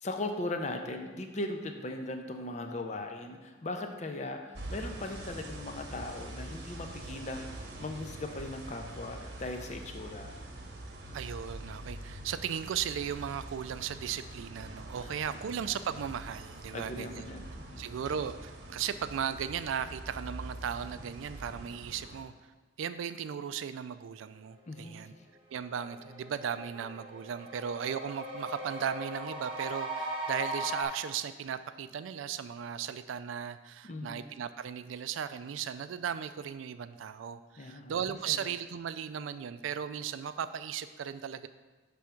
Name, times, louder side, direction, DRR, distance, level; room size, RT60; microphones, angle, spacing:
voice 1, 0.0-10.4 15.0-15.1 15.5-15.7 16.7-17.9 24.7-25.0 33.8-34.3 37.6-37.9 38.2-38.4, left 2 dB, 35° left, 5 dB, 0.6 m, -39 dB
sound 1, 4.5-22.2, right 1 dB, 55° right, 1.0 m, -45 dB
voice 2, 11.1-17.3 17.8-22.3 22.8-25.1 25.5-41.5, right 8 dB, 85° right, 13 dB, 0.3 m, -36 dB
sound 2, 25.1-25.2 25.5-30.9, right 1 dB, 25° right, 0.8 m, -39 dB
6.3 x 3.5 x 5.8 m, 1.3 s
head